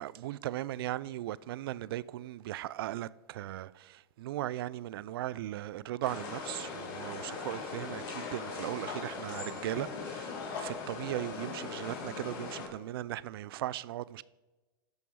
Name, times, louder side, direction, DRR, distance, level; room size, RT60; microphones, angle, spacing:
voice 1, 0.0-14.2, right 14 dB, 70° right, 0.4 m, -38 dB
sound 1, 6.0-12.7, left 4 dB, 55° left, 2.5 m, -40 dB
13.0 x 5.2 x 4.8 m
hypercardioid pair, 110°, 13 cm